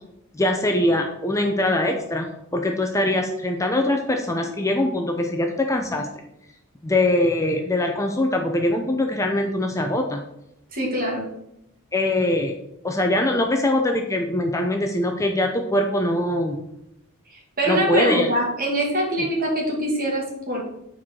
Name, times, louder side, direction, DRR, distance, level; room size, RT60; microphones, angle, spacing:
voice 1, 0.3-6.1 6.8-10.2 11.9-12.5 12.8-16.6 17.7-18.3, left 1 dB, 15° left, 3 dB, 0.6 m, -22 dB
voice 2, 10.7-11.3 17.3-20.6, right 1 dB, 40° right, -2 dB, 2.4 m, -24 dB
8.5 x 4.6 x 4.3 m, 0.81 s
head